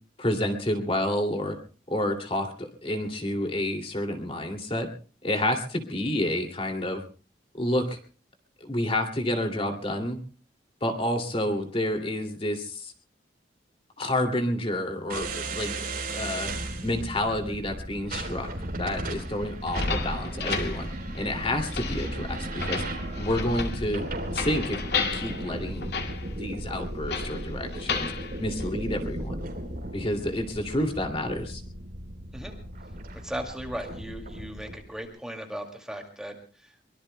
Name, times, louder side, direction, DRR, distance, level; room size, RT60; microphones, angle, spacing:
voice 1, 0.2-1.6 1.9-4.9 5.2-7.0 7.5-8.0 8.6-10.2 10.8-12.9 14.0-15.7 16.1-16.5 16.8-18.5 18.8-20.9 21.1-22.8 23.2-25.9 26.3-28.1 28.4-29.4 29.9-31.6, left 1 dB, 30° left, 3 dB, 2.5 m, -29 dB
sound 1, 15.1-34.8, right 1 dB, 55° right, 3.7 m, -36 dB
sound 2, 19.6-29.3, left 4 dB, 60° left, 2.3 m, -34 dB
voice 2, 33.2-36.7, equal, 5° right, 3 dB, 2.3 m, -37 dB
24.0 x 22.5 x 2.2 m, 0.39 s
head